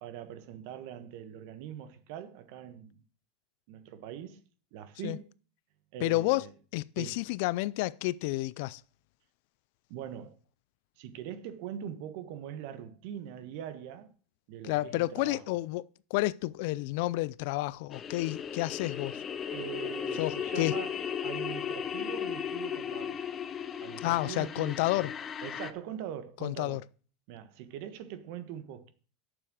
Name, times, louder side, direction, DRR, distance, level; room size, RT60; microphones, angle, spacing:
voice 1, 0.0-2.9 3.7-4.4 4.7-5.3 5.9-6.5 7.0-7.2 9.9-10.4 11.0-14.1 14.5-15.4 19.5-20.9 21.2-23.2 23.8-25.1 25.4-26.8 27.3-28.9, right 10 dB, 60° right, 1.3 m, -42 dB
voice 2, 6.0-6.5 6.7-8.8 14.6-19.2 20.2-20.8 24.0-25.1 26.4-26.8, left 19 dB, 65° left, 0.4 m, -30 dB
sound 1, 17.9-25.7, left 8 dB, 25° left, 0.7 m, -36 dB
8.9 x 6.9 x 6.3 m
supercardioid pair, 145°, 0 cm